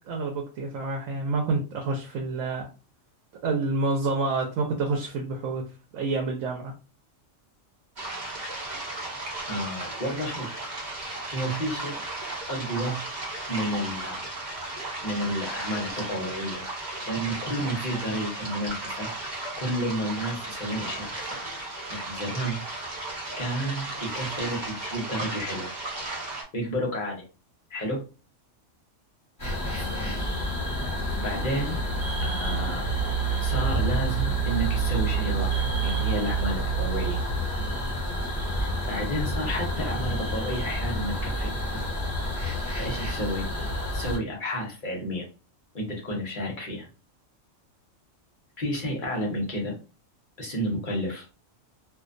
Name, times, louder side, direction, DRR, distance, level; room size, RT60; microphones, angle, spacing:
voice 1, 0.1-2.7 3.4-5.7 5.9-6.7, right 3 dB, 85° right, 1 dB, 1.0 m, -28 dB
sound 1, 8.0-26.4, right 2 dB, 40° right, 0.9 m, -35 dB
voice 2, 9.5-10.6 11.3-12.0 12.5-13.0 13.5-14.2 15.0-16.6 17.0-19.1 19.6-21.4 21.9-22.6 23.4-25.7 26.5-27.2 27.7-28.0 31.2-31.8 32.2-32.9 33.4-37.2 38.6-41.8 42.8-43.5 43.9-45.3 45.7-46.9 48.6-49.7 50.4-51.3, equal, 45° left, -2 dB, 0.9 m, -31 dB
sound 2, 29.4-44.2, right 2 dB, 15° left, 1.2 m, -28 dB
2.5 x 2.2 x 2.5 m, 0.33 s
omnidirectional pair, 1.3 m